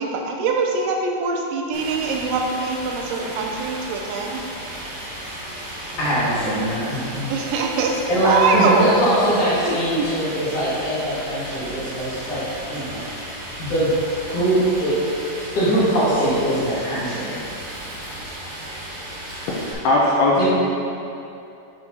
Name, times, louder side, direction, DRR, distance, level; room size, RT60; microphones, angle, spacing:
voice 1, 0.0-4.4 7.3-8.9 9.7-10.1, right 4 dB, 85° right, 2 dB, 3.0 m, -23 dB
Stream, 1.7-19.7, right 1 dB, 60° right, 2.3 m, -35 dB
voice 2, 6.0-7.3 8.1-12.4 12.7-13.0 13.6-13.9 14.3-15.0 15.3-17.4 20.4-20.5, right 1 dB, 60° left, -10 dB, 2.4 m, -22 dB
voice 3, 19.2-20.4, left 2 dB, 75° left, -5 dB, 2.6 m, -20 dB
10.0 x 5.0 x 2.8 m, 2.7 s
omnidirectional pair, 5.2 m